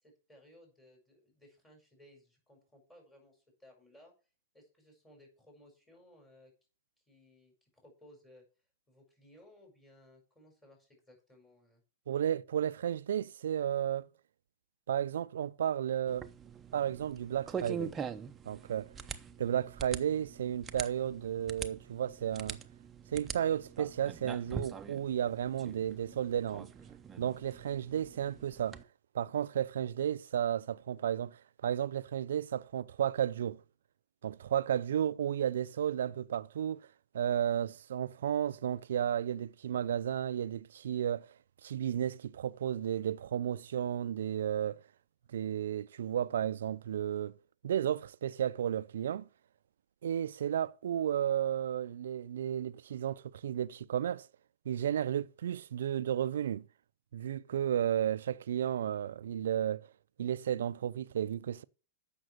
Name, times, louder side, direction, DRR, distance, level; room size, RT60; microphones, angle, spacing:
voice 1, 0.0-4.1 4.5-6.5 7.1-8.4 8.9-11.8, left 1 dB, 10° left, 5.2 m, -60 dB
voice 2, 12.1-14.1 14.9-16.3 16.7-18.0 18.4-18.9 19.4-22.6 23.1-26.7 27.2-28.8 29.1-33.6 34.2-36.9 37.1-41.3 41.6-44.8 45.3-47.3 47.6-49.3 50.0-54.3 54.7-56.7 57.1-59.9 60.2-61.6, right 10 dB, 80° right, 0.4 m, -33 dB
sound 1, 16.1-28.8, right 6 dB, 20° right, 0.7 m, -44 dB
7.8 x 5.9 x 7.7 m
hypercardioid pair, 135°, 0 cm